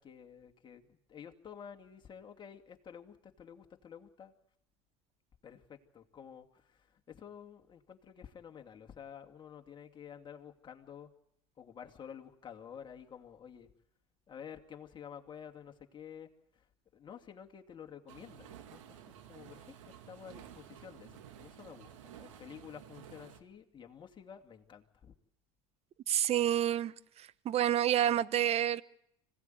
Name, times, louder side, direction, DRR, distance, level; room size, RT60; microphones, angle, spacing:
voice 1, 0.0-4.3 5.4-11.1 11.6-13.7 14.3-16.3 16.9-19.0 19.2-25.1, left 8 dB, 30° left, 2.6 m, -51 dB
sound 1, 18.1-23.4, right 9 dB, 85° right, 2.4 m, -53 dB
voice 2, 26.1-28.8, right 11 dB, 40° right, 0.9 m, -29 dB
25.5 x 16.5 x 9.4 m
supercardioid pair, 100°, 16 cm